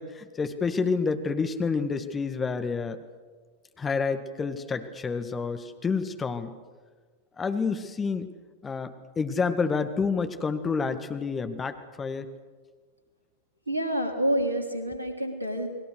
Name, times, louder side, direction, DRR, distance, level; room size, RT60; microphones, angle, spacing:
voice 1, 0.0-3.0 3.8-6.5 7.4-8.3 8.6-12.3, left 5 dB, 15° left, 8 dB, 1.8 m, -29 dB
voice 2, 13.7-15.7, right 1 dB, 85° right, 5 dB, 3.4 m, -28 dB
30.0 x 21.0 x 6.6 m, 1.4 s
figure-of-eight pair, 90°, 0 cm